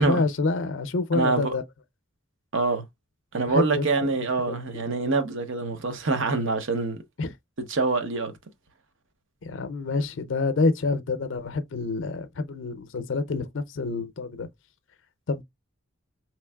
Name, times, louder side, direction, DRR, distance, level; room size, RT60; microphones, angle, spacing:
voice 1, 0.0-1.6 3.5-4.9 7.2-7.3 9.4-14.5 15.3-15.4, left 3 dB, 65° left, 0.5 m, -27 dB
voice 2, 1.1-1.6 2.5-2.8 3.3-7.0 7.7-8.3, right 3 dB, 70° right, 0.8 m, -25 dB
4.1 x 3.1 x 2.2 m
head